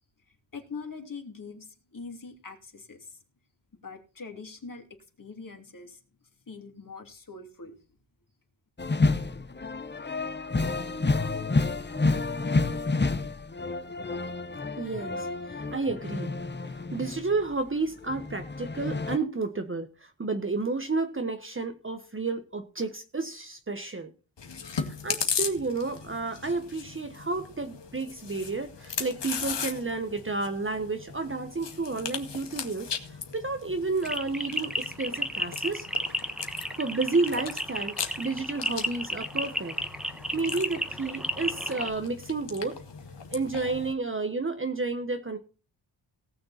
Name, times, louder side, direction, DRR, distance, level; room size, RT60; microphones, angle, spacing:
voice 1, 0.3-3.2 3.7-6.0 6.5-7.8, left 4 dB, 45° left, 3.1 m, -43 dB
sound 1, 8.8-17.5 17.9-19.2, left 3 dB, 25° left, 1.0 m, -29 dB
voice 2, 14.8-16.3 16.6-24.1 24.8-35.9 36.8-39.8 40.3-42.8 43.3-45.4, right 3 dB, 25° right, 1.3 m, -31 dB
Chewing mastication, 24.4-43.9, left 6 dB, 65° left, 2.1 m, -38 dB
sound 2, 34.0-41.9, equal, ahead, 1.3 m, -33 dB
18.5 x 6.5 x 4.2 m
cardioid pair, 70°, 45 cm